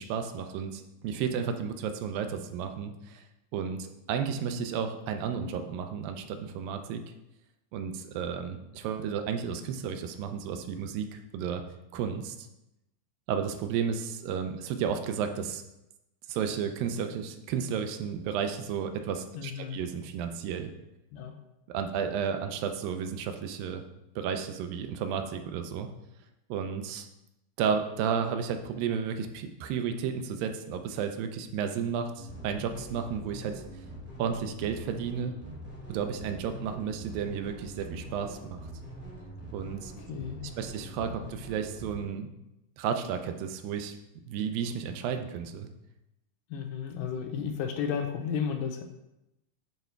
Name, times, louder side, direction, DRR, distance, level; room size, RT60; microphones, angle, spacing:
voice 1, 0.0-3.2 3.5-7.0 7.7-11.6 11.9-12.4 13.3-15.6 16.3-20.7 21.7-23.9 24.2-25.9 26.5-27.1 27.6-33.6 34.2-35.4 35.9-38.7 39.5-39.9 40.6-42.3 42.8-44.0 44.3-45.7, right 7 dB, 85° right, 7 dB, 2.3 m, -32 dB
voice 2, 19.3-19.8 21.1-21.3 40.1-40.4 46.5-48.8, left 7 dB, 80° left, 5 dB, 2.3 m, -33 dB
sound 1, 32.2-42.0, right 1 dB, 5° right, 1.0 m, -44 dB
9.2 x 3.4 x 4.5 m, 0.90 s
omnidirectional pair, 4.0 m